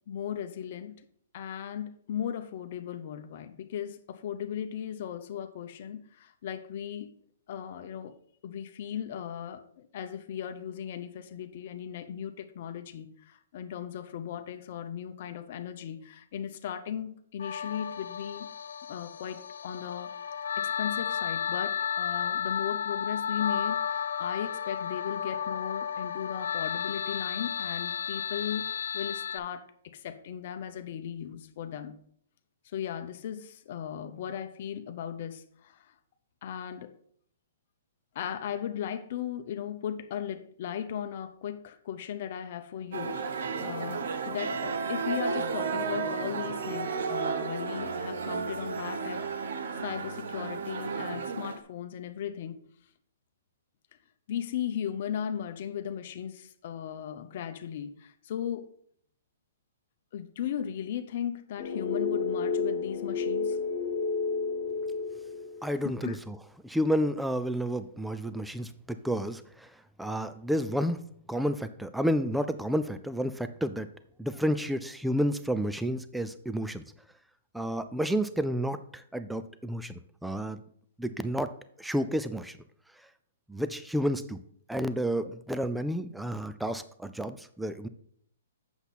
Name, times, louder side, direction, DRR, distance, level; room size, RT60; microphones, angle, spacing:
voice 1, 0.1-1.0 1.3-7.1 7.5-8.1 8.4-18.5 18.9-20.1 20.6-32.0 32.6-35.9 36.4-36.9 38.1-49.2 49.8-52.6 54.3-58.7 60.1-63.6 65.8-66.2, left 9 dB, 50° left, 0.7 m, -37 dB
sound 1, 17.4-29.4, left 8 dB, 80° left, 0.6 m, -33 dB
sound 2, 42.9-51.6, right 5 dB, 70° right, 1.0 m, -33 dB
sound 3, 61.6-65.8, left 4 dB, 25° left, 1.6 m, -31 dB
voice 2, 65.6-66.4 66.6-69.7 70.0-71.0 71.3-73.9 74.2-76.8 77.5-80.6 81.0-81.5 81.8-82.6 83.5-84.4 84.7-87.9, equal, ahead, 0.4 m, -30 dB
8.0 x 7.0 x 4.2 m
hypercardioid pair, 155°, 0 cm